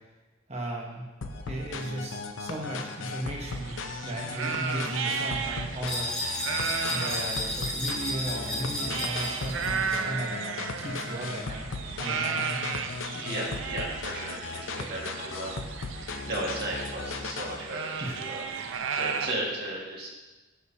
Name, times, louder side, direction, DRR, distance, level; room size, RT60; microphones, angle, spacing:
voice 1, 0.5-1.1 1.5-6.1 6.9-10.3 10.8-11.7 12.0-12.6 18.0-18.2 18.5-18.7, right 1 dB, 35° right, -1 dB, 1.1 m, -36 dB
sound 1, 1.2-17.6, left 3 dB, 80° left, 0.6 m, -37 dB
sound 2, 3.5-19.3, right 6 dB, 85° right, 0.5 m, -35 dB
sound 3, 5.9-10.0, left 1 dB, 5° left, 1.1 m, -33 dB
voice 2, 13.1-18.5 18.9-20.1, right 1 dB, 55° right, -4 dB, 1.7 m, -35 dB
12.5 x 4.1 x 2.7 m, 1.2 s
head